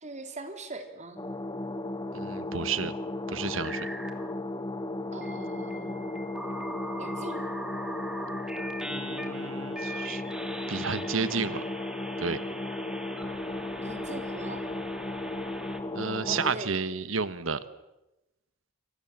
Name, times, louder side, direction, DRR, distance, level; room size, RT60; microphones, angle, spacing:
voice 1, 0.0-1.2 5.1-6.3 7.0-7.4 13.8-14.6 16.3-16.8, right 2 dB, 35° right, 6 dB, 3.6 m, -41 dB
sound 1, 1.2-16.5, left 2 dB, 20° left, 1.5 m, -35 dB
voice 2, 2.1-2.9 3.3-3.9 8.9-10.2 10.7-11.6 12.2-12.4 15.9-17.6, right 5 dB, 80° right, 14 dB, 1.4 m, -31 dB
sound 2, 3.4-4.3 5.2-15.8, right 1 dB, 5° right, 2.5 m, -41 dB
29.0 x 25.0 x 7.5 m, 0.97 s
head